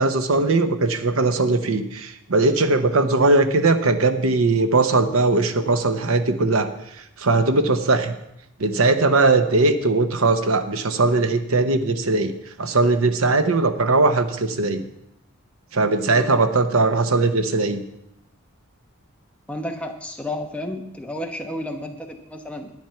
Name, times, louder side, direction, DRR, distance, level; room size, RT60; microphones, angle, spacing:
voice 1, 0.0-6.7 7.0-8.1 8.6-12.3 12.6-14.8 15.7-17.8, right 3 dB, 80° right, 9 dB, 0.9 m, -19 dB
voice 2, 19.5-22.7, left 1 dB, 5° left, 2 dB, 1.0 m, -31 dB
11.0 x 8.9 x 5.8 m, 0.83 s
head